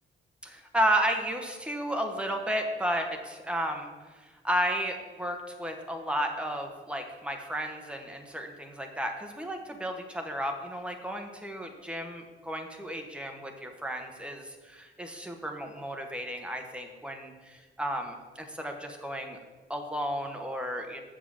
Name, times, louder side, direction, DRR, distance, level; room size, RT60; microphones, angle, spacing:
voice 1, 0.4-19.4 19.7-21.0, equal, 5° right, 3 dB, 1.0 m, -33 dB
7.4 x 5.6 x 7.5 m, 1.3 s
wide cardioid pair, 155°, 20 cm